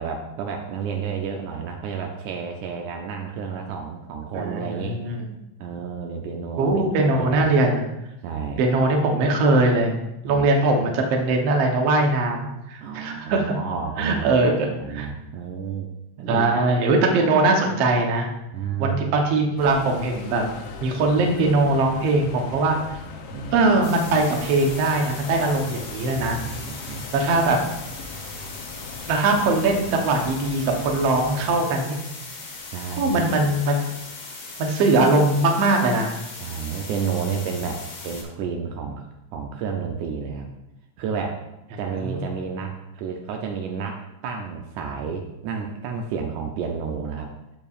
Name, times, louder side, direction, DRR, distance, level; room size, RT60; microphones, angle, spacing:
voice 1, 0.0-5.0 5.6-7.5 8.2-8.6 10.3-10.5 10.8-11.0 12.8-16.5 16.8-16.9 18.5-19.1 23.3-23.6 26.1-27.1 32.7-33.5 36.4-39.0 39.3-40.5 41.0-41.4 41.8-47.3, right 6 dB, 80° right, 2 dB, 2.0 m, -31 dB
voice 2, 4.3-5.3 6.6-7.8 8.6-9.9 10.2-13.6 14.0-15.1 16.3-18.3 18.8-20.4 20.8-22.8 23.5-26.4 27.1-27.6 29.1-32.0 33.0-33.9 34.6-36.1 41.7-42.2, right 2 dB, 65° right, 2 dB, 1.8 m, -21 dB
sound 1, 19.6-31.5, left 4 dB, 85° left, 1.3 m, -39 dB
sound 2, 23.8-38.2, left 3 dB, 50° left, 1.4 m, -39 dB
13.5 x 4.6 x 2.4 m, 0.92 s
omnidirectional pair, 3.5 m